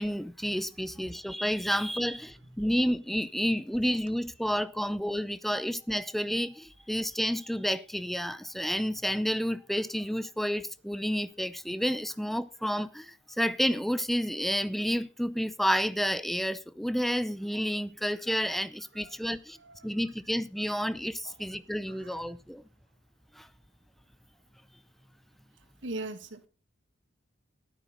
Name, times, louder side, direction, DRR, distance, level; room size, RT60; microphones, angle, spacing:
voice 1, 0.0-19.6 19.8-22.6 23.4-23.5, equal, ahead, 0.5 m, -30 dB
voice 2, 18.9-19.9 21.2-21.5 21.9-22.2 25.8-26.5, right 2 dB, 65° right, 1.6 m, -42 dB
14.0 x 12.0 x 3.9 m
head